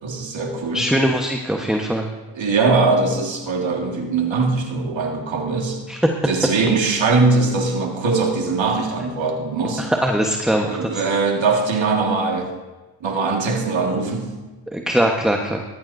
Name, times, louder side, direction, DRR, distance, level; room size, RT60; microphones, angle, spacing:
voice 1, 0.0-0.9 2.3-5.8 6.2-9.9 10.7-12.5 13.0-14.3, right 3 dB, 80° right, 1 dB, 2.0 m, -21 dB
voice 2, 0.7-2.1 5.9-6.0 9.8-11.0 14.7-15.6, equal, ahead, 2 dB, 1.2 m, -21 dB
18.5 x 14.0 x 2.7 m, 1.2 s
cardioid pair, 50°, 45 cm